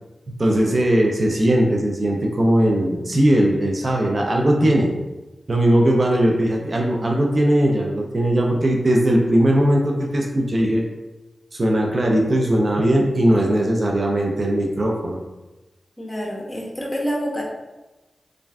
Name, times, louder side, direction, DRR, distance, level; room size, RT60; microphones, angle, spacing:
voice 1, 0.3-4.9 5.5-10.8 11.5-15.2, right 1 dB, 50° right, 0 dB, 0.4 m, -19 dB
voice 2, 16.0-17.4, equal, 20° left, -3 dB, 0.8 m, -27 dB
3.1 x 2.5 x 2.3 m, 1.1 s
cardioid pair, 50°, 0 cm